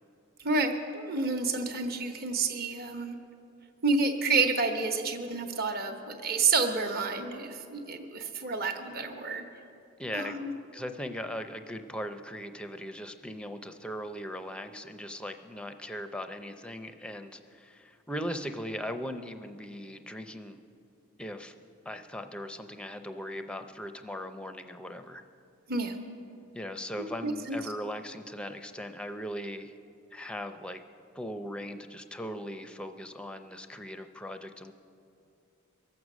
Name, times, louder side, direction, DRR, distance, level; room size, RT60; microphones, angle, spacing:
voice 1, 0.4-3.2 3.8-9.5 10.1-10.5 25.7-26.0 27.0-27.6, right 3 dB, 45° right, 5 dB, 1.1 m, -29 dB
voice 2, 10.0-10.4 10.7-20.6 21.2-21.5 21.9-25.2 26.5-29.7 30.1-30.8 31.1-34.7, equal, 5° left, 8 dB, 0.5 m, -39 dB
23.0 x 8.0 x 6.2 m, 2.6 s
head